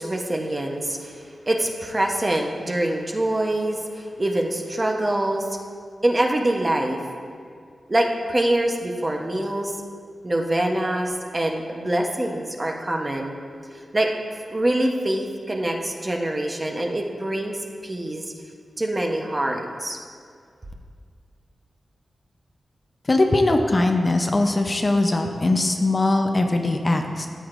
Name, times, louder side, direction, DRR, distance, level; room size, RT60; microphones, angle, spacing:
voice 1, 0.0-5.6 6.0-7.0 7.9-9.8 10.2-13.3 13.9-14.1 14.5-17.6 17.8-18.3 18.8-20.0, right 1 dB, 25° right, 2 dB, 0.9 m, -24 dB
voice 2, 23.1-27.3, left 2 dB, 35° left, 4 dB, 0.6 m, -21 dB
13.5 x 7.8 x 2.5 m, 2.2 s
wide cardioid pair, 80°, 0 cm